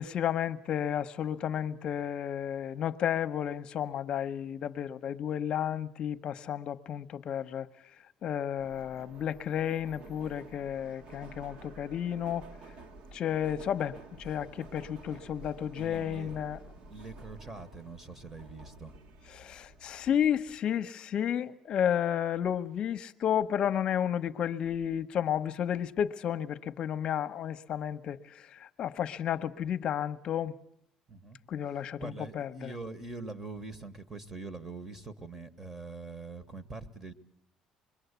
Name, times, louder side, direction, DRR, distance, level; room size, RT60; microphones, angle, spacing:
voice 1, 0.0-7.7 8.2-12.4 13.1-16.6 19.3-30.5 31.5-32.7, left 9 dB, 45° left, 1.0 m, -32 dB
Subway metro underground, 8.6-20.6, right 2 dB, 50° right, 1.5 m, -51 dB
voice 2, 15.8-16.4 16.9-18.9 31.1-31.4 32.0-37.1, right 3 dB, 15° right, 1.3 m, -43 dB
26.0 x 22.5 x 8.2 m
cardioid pair, 165°, 2 cm